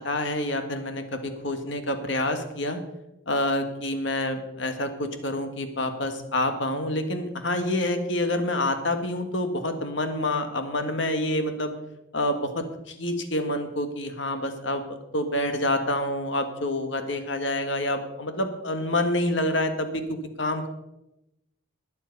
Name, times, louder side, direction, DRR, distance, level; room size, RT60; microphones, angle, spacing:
voice 1, 0.0-2.8 3.3-11.7 12.1-20.7, left 1 dB, 60° left, 7 dB, 1.6 m, -27 dB
19.5 x 7.5 x 5.4 m, 0.90 s
head